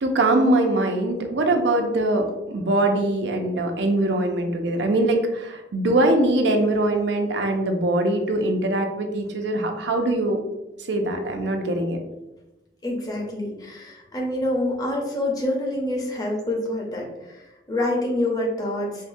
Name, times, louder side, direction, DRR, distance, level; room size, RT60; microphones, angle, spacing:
voice 1, 0.0-10.4 10.9-12.0, right 1 dB, 80° right, 4 dB, 0.5 m, -22 dB
voice 2, 12.8-19.1, left 1 dB, 20° left, -1 dB, 0.7 m, -27 dB
4.6 x 2.1 x 2.6 m, 1.0 s
head